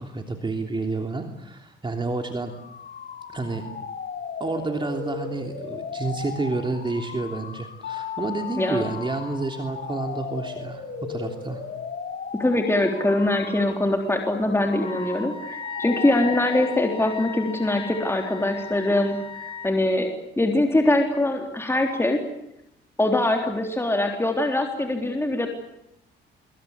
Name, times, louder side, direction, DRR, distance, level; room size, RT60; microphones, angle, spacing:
voice 1, 0.0-2.5 3.3-3.6 4.4-11.6, right 3 dB, 25° right, 4 dB, 3.2 m, -29 dB
sound 1, 2.4-17.1, left 5 dB, 50° left, 4.0 m, -37 dB
Mallet percussion, 7.8-10.3, left 9 dB, 75° left, 5.1 m, -37 dB
voice 2, 12.4-22.2 23.0-25.5, left 1 dB, 10° left, 3 dB, 3.7 m, -23 dB
Wind instrument woodwind instrument, 14.8-19.7, left 5 dB, 25° left, 2.4 m, -36 dB
25.5 x 24.0 x 8.3 m, 0.82 s
cardioid pair, 90°, 20 cm